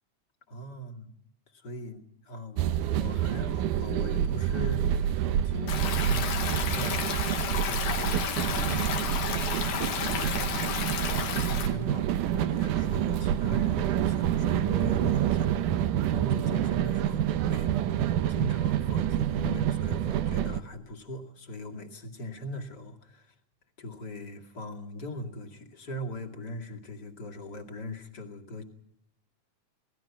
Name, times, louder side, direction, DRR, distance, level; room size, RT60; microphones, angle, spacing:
voice 1, 0.5-1.1 1.5-7.2 7.6-9.2 9.6-17.7 18.3-23.3 23.8-28.6, equal, 35° left, 2 dB, 2.6 m, -40 dB
sound 1, 2.6-20.6, right 10 dB, 85° right, 2.5 m, -27 dB
Stream, 5.7-11.7, left 7 dB, 90° left, 3.6 m, -32 dB
Bass guitar, 14.7-17.0, left 7 dB, 55° left, 3.9 m, -45 dB
28.0 x 19.0 x 6.0 m, 0.76 s
omnidirectional pair, 3.6 m